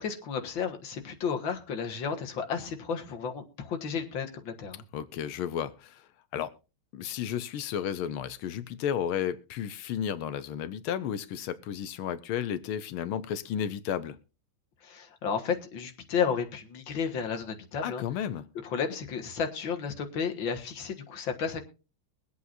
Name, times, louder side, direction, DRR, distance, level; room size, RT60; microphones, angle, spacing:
voice 1, 0.0-4.8 14.8-18.0 18.6-21.6, left 6 dB, 70° left, 2.2 m, -32 dB
voice 2, 4.9-6.1 6.3-6.5 6.9-14.2 17.8-18.5, left 9 dB, 85° left, 1.7 m, -33 dB
22.5 x 8.4 x 2.6 m
omnidirectional pair, 2.3 m